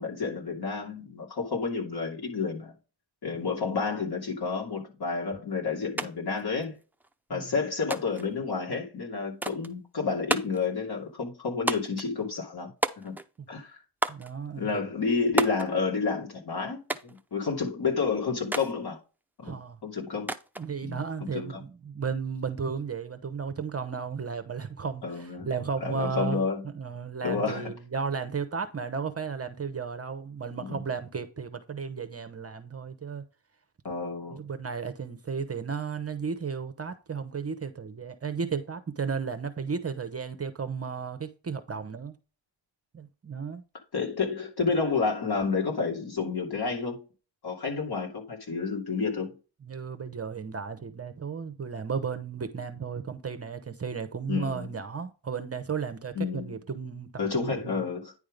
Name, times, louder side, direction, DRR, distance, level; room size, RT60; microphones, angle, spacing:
voice 1, 0.0-2.7 3.2-6.8 7.3-12.7 13.0-13.1 13.5-13.8 14.6-19.0 19.4-19.6 19.8-20.3 20.8-21.6 25.0-25.5 25.8-26.6 27.2-27.7 30.6-30.8 33.8-34.4 43.9-47.0 47.4-49.3 54.3-54.7 56.1-56.5 57.2-58.1, left 4 dB, 55° left, 2.8 m, -30 dB
sound 1, 6.0-6.1 6.4-7.1 7.9-8.3 9.4-9.7 10.3-10.7 11.7-12.1 12.8-13.4 14.0-14.3 15.4-15.7 16.9-17.2 18.5-18.7 20.3-20.7, right 2 dB, 5° right, 0.5 m, -31 dB
voice 2, 14.1-14.7 19.4-19.8 20.6-26.4 26.6-33.2 34.3-42.1 42.9-43.6 49.6-57.9, right 5 dB, 30° right, 0.8 m, -34 dB
9.8 x 3.6 x 5.1 m
cardioid pair, 105°, 45 cm